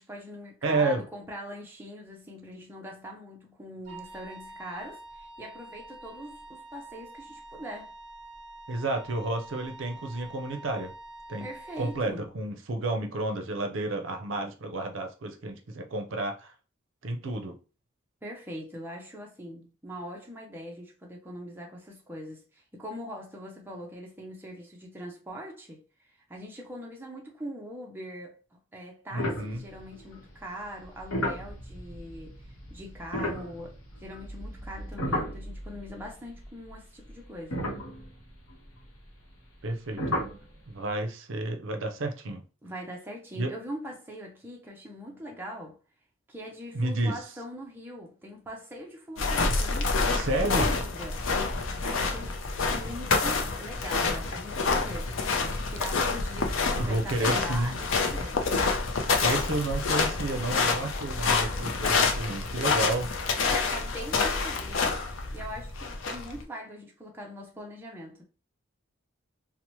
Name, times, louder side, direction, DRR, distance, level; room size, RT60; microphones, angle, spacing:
voice 1, 0.0-7.9 11.4-12.3 18.2-37.6 42.6-45.8 46.3-51.5 51.8-55.1 55.7-58.4 63.5-65.0 65.3-68.2, equal, 10° right, 0.4 m, -42 dB
voice 2, 0.6-1.0 8.7-10.9 11.3-11.5 11.8-16.5 17.0-17.6 29.1-29.6 39.6-40.0 40.7-42.4 43.4-43.5 46.7-47.2 50.1-50.7 56.8-57.8 59.2-63.1, right 2 dB, 65° right, 0.5 m, -31 dB
Wind instrument woodwind instrument, 3.9-12.0, right 2 dB, 35° right, 1.0 m, -46 dB
sound 1, 29.2-30.2 30.8-36.0 36.3-36.5 37.1-37.2 37.5-38.6 40.0-40.4, left 1 dB, 85° left, 0.8 m, -34 dB
sound 2, 49.2-66.4, left 4 dB, 70° left, 0.5 m, -28 dB
2.8 x 2.0 x 3.0 m
head